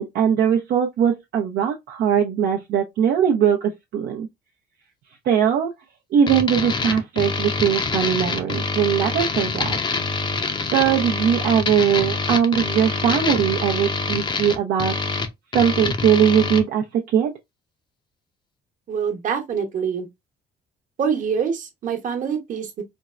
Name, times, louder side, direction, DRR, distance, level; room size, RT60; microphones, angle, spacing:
voice 1, 0.0-4.3 5.3-5.7 6.1-9.8 10.7-15.0 15.5-17.3, right 8 dB, 65° right, 0.7 m, -20 dB
sound 1, 6.3-16.6, left 4 dB, 25° left, 0.6 m, -25 dB
voice 2, 18.9-20.1 21.0-22.8, right 7 dB, 50° right, 1.1 m, -25 dB
4.4 x 2.1 x 2.4 m
cardioid pair, 110°, 17 cm